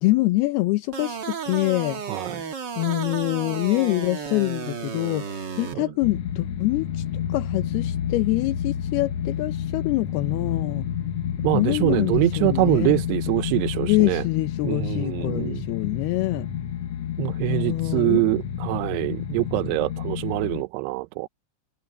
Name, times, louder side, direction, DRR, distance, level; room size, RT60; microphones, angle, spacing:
voice 1, 0.0-2.0 2.8-10.9 11.5-13.0 13.9-16.5 17.5-18.2, left 19 dB, 80° left, 2.7 m, -25 dB
sound 1, 0.9-5.7, right 6 dB, 50° right, 1.3 m, -33 dB
voice 2, 2.1-2.4 5.7-5.8 11.4-14.2 14.6-15.6 17.2-21.3, right 22 dB, 90° right, 2.7 m, -24 dB
sound 2, 6.0-20.6, left 9 dB, 65° left, 1.6 m, -30 dB
omnidirectional pair, 4.7 m